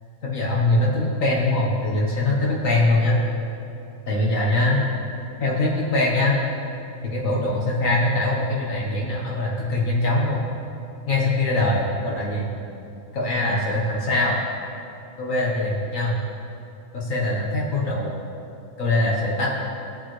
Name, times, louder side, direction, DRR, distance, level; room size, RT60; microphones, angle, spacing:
voice 1, 0.2-3.2 4.1-4.8 5.4-6.4 7.1-10.4 11.1-12.5 13.1-14.4 15.2-16.2 16.9-18.1 18.8-19.5, left 2 dB, 75° left, -4 dB, 1.9 m, -22 dB
19.5 x 8.0 x 3.3 m, 2.7 s
omnidirectional pair, 1.4 m